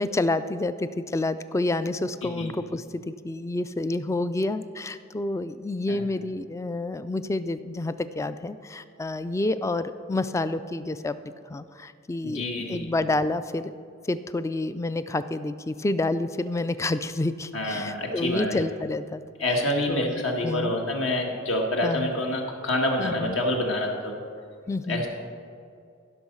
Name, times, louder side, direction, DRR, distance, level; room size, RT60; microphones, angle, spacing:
voice 1, 0.0-11.2 11.5-12.4 12.7-13.7 14.1-19.2 19.9-20.8 21.8-22.1 23.0-23.4 24.7-25.1, left 2 dB, 15° left, 13 dB, 0.3 m, -29 dB
voice 2, 12.2-12.9 17.5-18.6 19.4-24.1 24.9-25.1, left 1 dB, 75° left, 1 dB, 1.8 m, -27 dB
15.0 x 6.3 x 5.4 m, 2.3 s
head